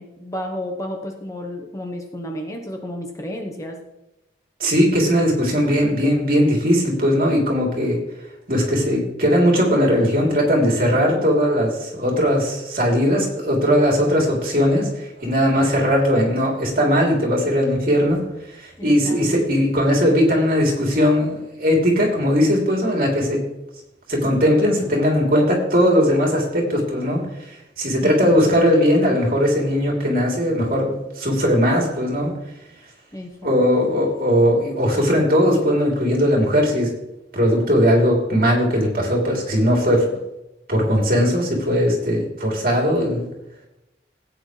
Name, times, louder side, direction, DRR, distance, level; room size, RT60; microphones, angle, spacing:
voice 1, 0.0-3.8 18.8-19.3 28.0-28.7 33.1-33.6, left 1 dB, 20° left, 2 dB, 1.0 m, -32 dB
voice 2, 4.6-8.0 8.5-14.9 15.2-18.2 18.5-23.4 24.1-27.2 27.5-32.3 33.4-36.9 37.3-40.2 40.7-43.3, equal, 55° right, -2 dB, 3.3 m, -19 dB
16.5 x 8.9 x 3.3 m, 0.92 s
head